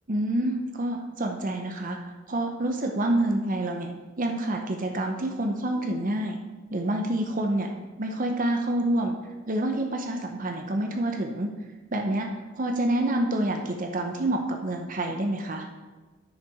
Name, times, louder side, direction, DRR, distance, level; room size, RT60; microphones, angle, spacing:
voice 1, 0.1-6.4 6.7-7.7 8.0-9.2 9.5-11.5 11.9-12.3 12.5-15.7, right 1 dB, 40° right, 3 dB, 0.7 m, -27 dB
9.7 x 6.7 x 4.8 m, 1.2 s
head